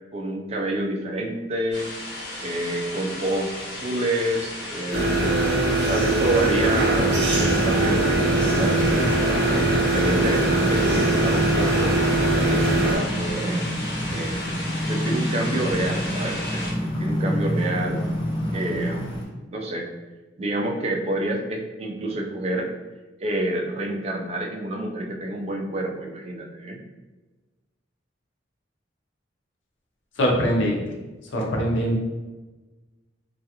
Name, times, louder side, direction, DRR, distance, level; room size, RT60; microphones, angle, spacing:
voice 1, 0.1-1.9 2.4-5.5 5.9-8.8 9.4-11.9 12.4-13.7 14.1-14.6 14.9-18.0 18.5-19.2 19.5-19.9 20.4-22.7 23.2-26.8, right 1 dB, 35° right, 1 dB, 0.3 m, -28 dB
sound 1, 1.7-16.7, left 1 dB, 65° left, 1.1 m, -34 dB
sound 2, 4.9-13.0, right 2 dB, 65° right, 0.8 m, -22 dB
sound 3, 7.2-19.2, equal, 25° left, 0.6 m, -28 dB
voice 2, 30.2-30.8 31.3-32.0, equal, 80° left, 0 dB, 0.6 m, -22 dB
2.4 x 2.3 x 2.8 m, 1.2 s
head